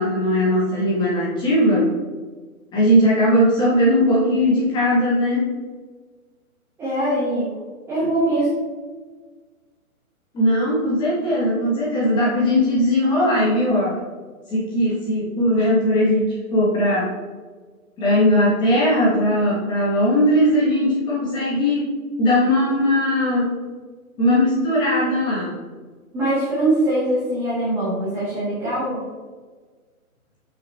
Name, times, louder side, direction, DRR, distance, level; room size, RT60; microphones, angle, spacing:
voice 1, 0.0-1.9 2.7-5.5 10.3-14.0 14.5-17.1 18.0-21.9 22.2-23.5 24.2-25.6, equal, 10° left, -6 dB, 1.3 m, -19 dB
voice 2, 6.8-7.5 7.9-8.5 26.1-29.0, right 1 dB, 5° right, -11 dB, 1.1 m, -22 dB
5.8 x 5.6 x 3.4 m, 1.4 s
hypercardioid pair, 155°, 44 cm